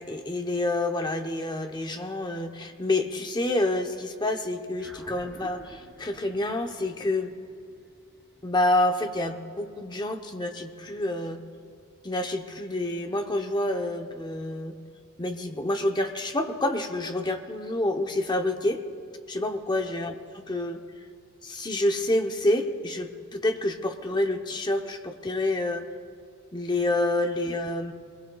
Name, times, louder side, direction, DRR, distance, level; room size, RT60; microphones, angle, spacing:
voice 1, 0.0-7.3 8.4-11.4 12.0-14.8 15.2-18.8 19.3-20.8 21.4-25.9 26.5-27.9, left 1 dB, 20° left, 5 dB, 0.8 m, -28 dB
sound 1, 4.8-9.4, right 1 dB, ahead, 2.2 m, -50 dB
22.5 x 19.5 x 2.3 m, 2.2 s
head